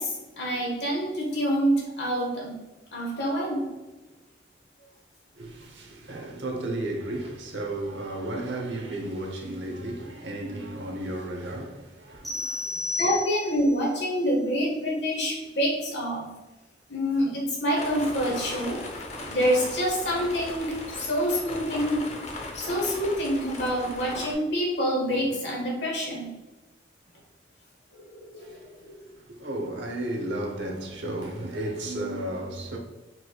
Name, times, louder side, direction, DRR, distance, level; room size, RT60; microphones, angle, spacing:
voice 1, 0.0-2.5 2.9-3.7 13.0-16.3 16.9-22.1 22.5-26.3 28.0-28.9, equal, 65° left, 1.6 m, -27 dB
voice 2, 5.4-13.0 28.4-28.9 29.2-32.8, right 1 dB, 75° right, 0.9 m, -34 dB
sound 1, 12.2-13.8, left 3 dB, ahead, 1.1 m, -32 dB
sound 2, 17.7-24.3, left 1 dB, 35° left, 0.7 m, -38 dB
4.7 x 4.6 x 2.4 m
head